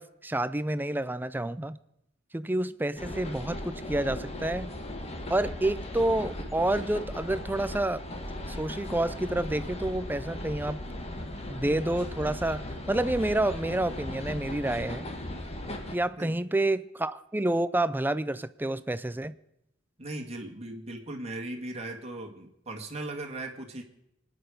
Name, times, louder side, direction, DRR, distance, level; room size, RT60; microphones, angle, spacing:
voice 1, 0.0-1.8 2.3-4.7 5.3-8.1 8.5-10.8 11.5-15.1 15.9-19.4, right 1 dB, 10° right, 0.5 m, -29 dB
sound 1, 3.0-16.0, left 1 dB, 30° left, 1.7 m, -37 dB
voice 2, 20.0-23.8, right 2 dB, 35° right, 2.1 m, -38 dB
25.5 x 10.0 x 5.1 m
head